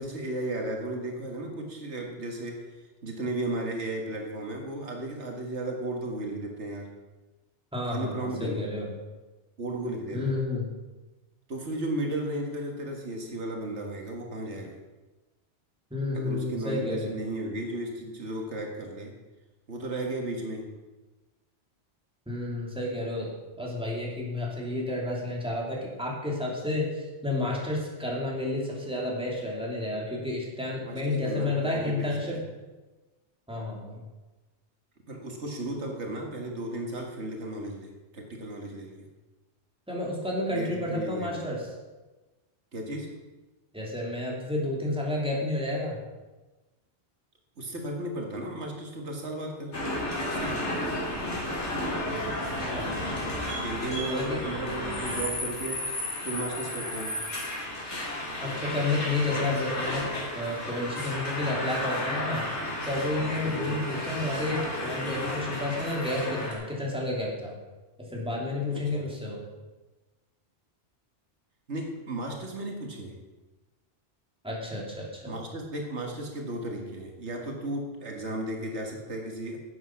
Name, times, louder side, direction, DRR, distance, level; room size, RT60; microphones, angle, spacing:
voice 1, 0.0-2.6 3.0-6.9 7.8-8.6 9.6-10.3 11.5-14.8 16.1-19.1 19.7-20.7 30.8-32.4 35.1-39.0 40.5-41.5 42.7-43.1 47.6-49.7 50.3-50.9 53.6-55.9 56.2-57.2 63.4-63.8 68.7-69.1 71.7-73.2 75.3-79.6, right 1 dB, 75° right, 1 dB, 1.9 m, -35 dB
voice 2, 7.7-8.9 10.1-10.6 15.9-17.2 22.3-23.3 23.6-32.4 33.5-34.0 39.9-41.7 43.7-46.0 52.4-53.0 54.0-54.4 58.4-62.5 62.8-67.6 68.0-69.4 74.4-75.3, left 2 dB, 5° right, -3 dB, 2.7 m, -31 dB
sound 1, 49.7-66.5, left 1 dB, 80° left, 2.9 m, -33 dB
11.0 x 8.1 x 5.9 m, 1.2 s
omnidirectional pair, 1.2 m